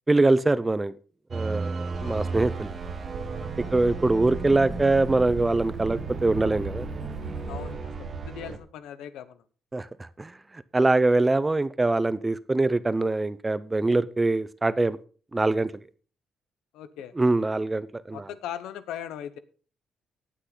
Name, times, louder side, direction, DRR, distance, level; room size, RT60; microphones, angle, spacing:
voice 1, 0.1-0.9 1.3-2.7 3.7-6.9 9.7-10.3 10.7-15.0 15.3-15.7 17.2-18.3, right 2 dB, 20° right, 16 dB, 0.7 m, -23 dB
sound 1, 1.3-8.6, right 3 dB, 40° right, 1.5 m, -35 dB
sound 2, 1.9-8.3, right 6 dB, 70° right, 1.3 m, -38 dB
sound 3, 2.1-7.7, left 2 dB, 30° left, 3.5 m, -49 dB
voice 2, 3.6-3.9 7.5-9.4 16.7-17.1 18.1-19.4, left 10 dB, 90° left, 13 dB, 0.9 m, -39 dB
18.5 x 6.2 x 3.9 m, 0.38 s
cardioid pair, 90°, 0 cm